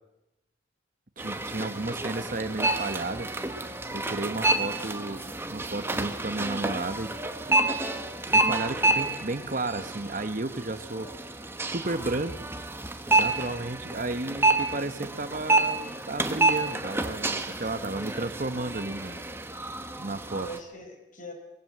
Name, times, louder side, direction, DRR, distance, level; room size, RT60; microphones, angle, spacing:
sound 1, 1.2-20.6, right 2 dB, 10° right, 1.3 m, -29 dB
voice 1, 1.2-3.3 3.6-7.5 7.9-8.0 8.3-11.1 11.6-12.5 13.1-19.2 20.0-20.5, right 2 dB, 40° right, 11 dB, 1.1 m, -33 dB
voice 2, 4.2-4.6 11.0-11.2 13.3-13.8 17.6-18.3 20.3-21.3, equal, 40° left, 4 dB, 4.8 m, -44 dB
23.5 x 20.5 x 7.8 m, 0.94 s
head